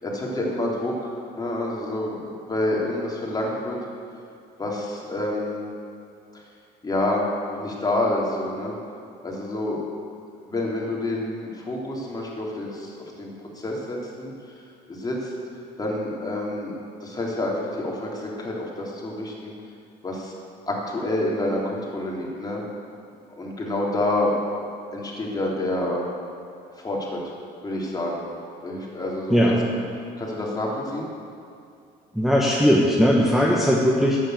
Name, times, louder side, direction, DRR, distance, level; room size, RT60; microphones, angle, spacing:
voice 1, 0.0-3.8 4.6-5.7 6.8-8.7 9.2-9.8 10.5-14.3 14.9-15.3 15.8-19.5 20.0-20.3 20.7-22.6 23.4-24.3 24.9-26.0 26.8-27.3 27.6-28.2 28.6-29.8 30.2-31.1 33.4-33.7, left 1 dB, 20° left, -3 dB, 3.2 m, -28 dB
voice 2, 29.3-29.6 32.2-34.2, equal, ahead, -3 dB, 1.3 m, -19 dB
11.0 x 9.0 x 7.8 m, 2.4 s
cardioid pair, 110°, 17 cm